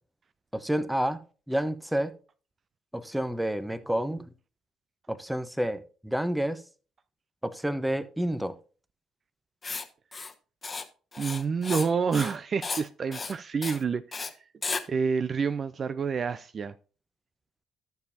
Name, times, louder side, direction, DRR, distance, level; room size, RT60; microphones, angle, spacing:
voice 1, 0.5-1.2 1.5-2.1 2.9-4.2 5.1-6.6 7.4-8.5, right 1 dB, 5° right, 0.9 m, -29 dB
Writing, 9.6-9.8 10.1-10.3 10.6-10.8 11.1-11.9 12.1-12.4 12.6-12.8 13.1-13.3 13.6-13.8 14.1-14.3 14.6-14.8, left 4 dB, 35° left, 1.1 m, -34 dB
voice 2, 11.2-14.3 14.9-16.7, right 5 dB, 45° right, 0.4 m, -28 dB
13.0 x 6.9 x 2.7 m
hypercardioid pair, 50°, 0 cm